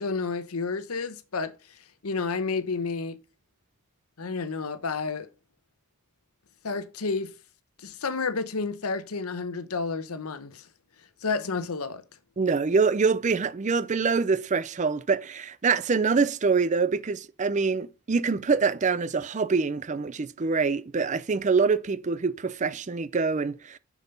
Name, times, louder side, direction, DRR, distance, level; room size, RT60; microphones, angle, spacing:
voice 1, 0.0-1.5 2.0-3.2 4.2-5.3 6.6-7.3 7.8-10.6 11.2-12.0, left 4 dB, 90° left, 0.9 m, -30 dB
voice 2, 12.4-23.8, right 4 dB, 35° right, 0.5 m, -25 dB
6.8 x 6.2 x 5.4 m
head